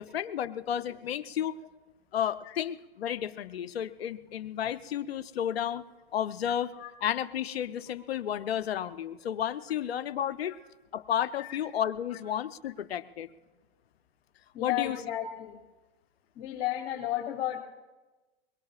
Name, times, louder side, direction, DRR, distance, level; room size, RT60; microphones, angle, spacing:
voice 1, 0.0-1.6 2.1-6.7 7.0-10.5 10.9-13.3 14.6-15.0, left 10 dB, 85° left, 12 dB, 0.8 m, -32 dB
voice 2, 14.5-15.6 16.3-17.6, left 12 dB, 60° left, -1 dB, 2.7 m, -33 dB
23.0 x 22.5 x 2.4 m, 1.2 s
hypercardioid pair, 110°, 30 cm